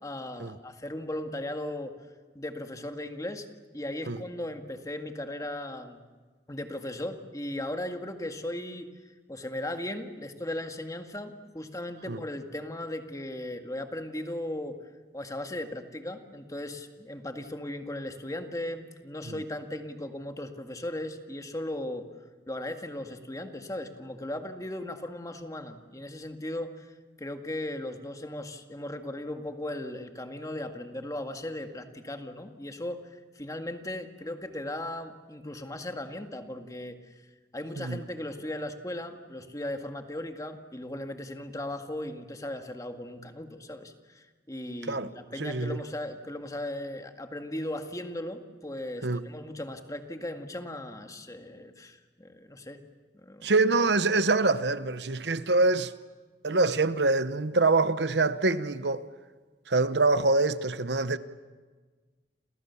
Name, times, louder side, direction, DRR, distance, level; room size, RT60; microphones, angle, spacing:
voice 1, 0.0-2.0 2.4-3.5 3.7-6.0 6.5-8.9 9.3-14.8 15.1-22.1 22.5-37.0 37.5-52.8 53.1-53.5, left 1 dB, 20° left, 1.9 m, -37 dB
voice 2, 45.4-45.8 49.0-49.2 53.4-55.9 56.4-59.1 59.7-61.2, right 3 dB, 70° right, 1.0 m, -25 dB
29.5 x 28.5 x 7.1 m
head